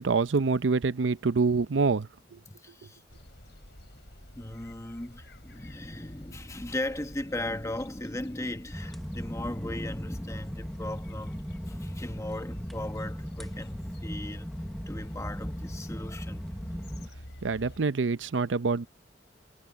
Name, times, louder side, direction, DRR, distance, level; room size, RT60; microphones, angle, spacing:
voice 1, 0.0-2.4 17.4-18.9, right 4 dB, 80° right, 0.6 m, -26 dB
voice 2, 2.5-3.0 4.3-11.4 11.7-14.5 14.9-16.5, left 1 dB, 15° left, 1.2 m, -37 dB
sound 1, 3.1-17.8, left 1 dB, 65° left, 6.0 m, -49 dB
sound 2, 8.7-17.1, equal, ahead, 0.8 m, -37 dB
head